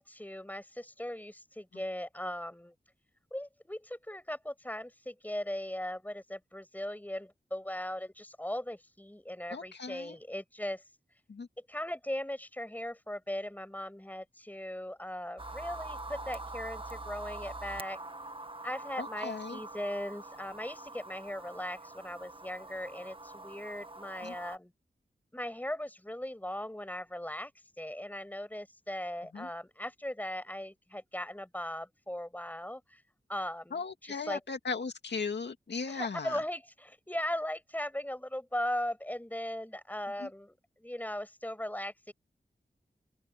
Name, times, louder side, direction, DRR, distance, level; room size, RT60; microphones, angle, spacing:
voice 1, 0.0-2.7 3.3-10.8 11.7-18.0 18.6-24.7 25.3-27.5 27.8-33.0 33.3-34.4 35.9-42.1, left 1 dB, 10° left, 7.5 m, -38 dB
voice 2, 9.5-10.2 11.3-11.5 19.0-19.6 24.2-24.3 29.3-29.5 33.7-36.4 40.2-40.3, left 5 dB, 85° left, 2.2 m, -37 dB
sound 1, 15.4-24.6, right 2 dB, 30° right, 1.5 m, -44 dB
wide cardioid pair, 90°, 17 cm